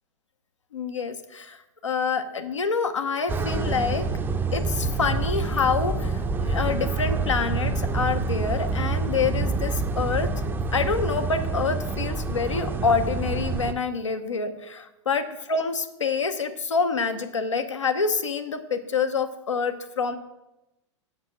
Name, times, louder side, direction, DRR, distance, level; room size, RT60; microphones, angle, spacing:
voice 1, 0.7-4.1 4.5-10.3 10.7-20.2, left 5 dB, 75° left, 7 dB, 0.9 m, -27 dB
sound 1, 3.3-13.7, right 3 dB, 15° right, 0.6 m, -27 dB
7.2 x 5.8 x 6.3 m, 0.95 s
figure-of-eight pair, 95°, 16 cm